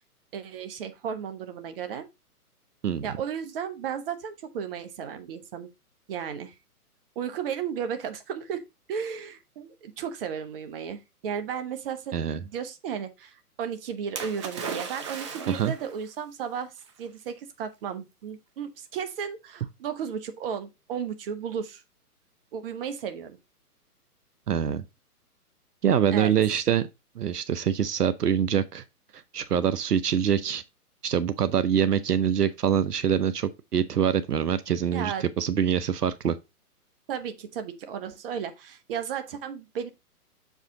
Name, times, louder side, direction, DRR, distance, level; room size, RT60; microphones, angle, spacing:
voice 1, 0.3-2.1 3.0-5.7 6.1-6.5 7.2-8.6 8.9-16.7 17.0-21.8 22.5-23.4 26.1-26.3 34.9-35.2 37.1-39.9, right 7 dB, 35° right, 1.0 m, -34 dB
Splash splatter, 14.2-16.0 16.9-17.0, right 5 dB, 20° right, 0.6 m, -36 dB
voice 2, 24.5-24.8 25.8-26.9 27.2-28.8 29.1-30.6 31.0-36.4, right 8 dB, 80° right, 0.8 m, -25 dB
6.8 x 4.9 x 3.7 m
hypercardioid pair, 135°, 46 cm